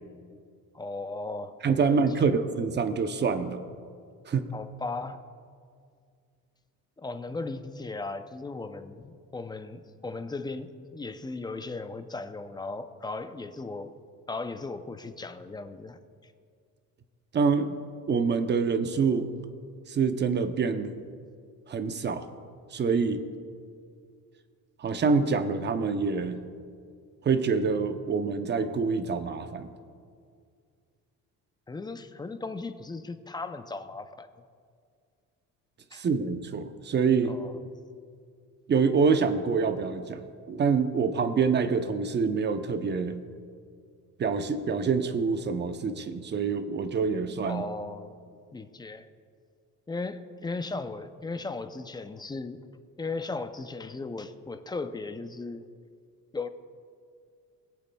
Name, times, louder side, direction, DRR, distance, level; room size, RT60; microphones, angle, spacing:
voice 1, 0.7-2.3 4.5-5.2 7.0-13.9 14.3-16.3 31.7-34.3 35.9-36.1 37.3-37.5 47.4-48.2 48.5-49.1 49.9-52.6 53.0-55.7 56.3-56.5, left 3 dB, 10° left, 9 dB, 0.4 m, -37 dB
voice 2, 1.6-3.6 4.3-4.5 17.3-17.8 18.1-19.3 19.9-20.9 21.7-22.3 22.7-23.2 24.8-26.4 27.2-29.7 35.9-37.3 38.7-40.2 40.5-43.2 44.2-47.6, right 5 dB, 30° right, 9 dB, 0.6 m, -26 dB
20.5 x 8.0 x 2.3 m, 2.2 s
cardioid pair, 115°, 35 cm